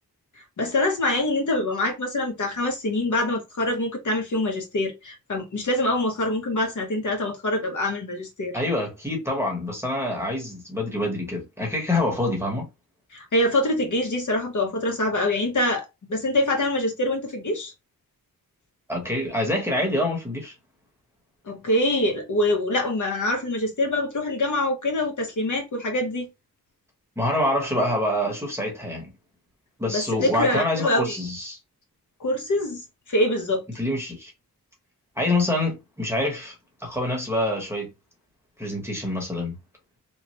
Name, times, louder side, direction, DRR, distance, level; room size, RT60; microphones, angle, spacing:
voice 1, 0.6-8.6 13.1-17.7 21.5-26.3 29.9-31.2 32.2-33.6, left 1 dB, 55° left, 0.9 m, -25 dB
voice 2, 8.5-12.7 18.9-20.5 27.2-29.1 29.8-31.6 33.7-34.3 35.2-36.5 36.8-37.9 38.6-39.6, left 1 dB, 5° right, 0.9 m, -26 dB
3.1 x 2.1 x 2.9 m
wide cardioid pair, 130°, 35 cm